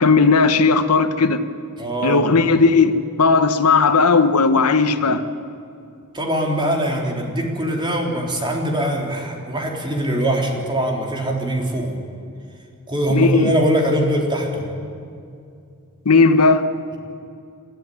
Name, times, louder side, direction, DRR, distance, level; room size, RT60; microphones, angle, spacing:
voice 1, 0.0-1.4 2.0-5.2 13.1-13.5 16.0-16.6, left 4 dB, 90° left, 1.2 m, -16 dB
voice 2, 1.8-2.4 6.1-12.0 12.9-14.7, right 1 dB, 20° right, 3.5 m, -22 dB
29.5 x 13.5 x 10.0 m
head